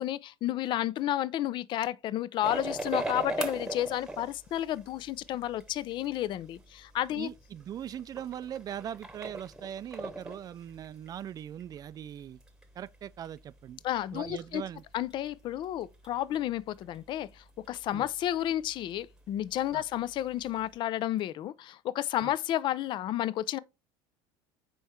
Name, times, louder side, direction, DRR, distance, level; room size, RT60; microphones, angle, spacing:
voice 1, 0.0-7.3 13.8-14.6 14.9-23.6, left 12 dB, 50° left, 0.4 m, -31 dB
sound 1, 2.4-20.8, right 2 dB, 5° right, 1.1 m, -42 dB
voice 2, 7.1-12.4 12.8-13.8 14.1-14.8 17.9-18.0 19.7-19.8 22.2-22.3, right 10 dB, 35° right, 0.4 m, -40 dB
5.4 x 4.5 x 4.3 m
supercardioid pair, 105°, 11 cm